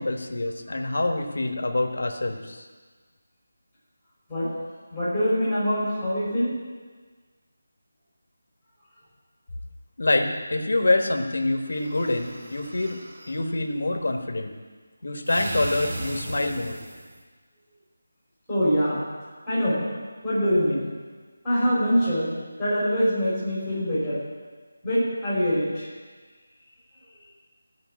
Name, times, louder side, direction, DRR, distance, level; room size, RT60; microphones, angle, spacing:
voice 1, 0.0-2.6 10.0-13.0 13.3-14.5 15.0-16.8, left 2 dB, 55° left, 3 dB, 1.5 m, -26 dB
voice 2, 4.9-6.5 18.5-19.0 19.5-19.8 20.2-20.9 21.4-22.3 22.6-24.2 24.8-25.9, equal, ahead, -11 dB, 3.4 m, -24 dB
sound 1, 11.7-13.4 15.3-17.2, right 2 dB, 25° right, 1.1 m, -36 dB
16.0 x 5.3 x 8.4 m, 1.4 s
figure-of-eight pair, 180°, 0 cm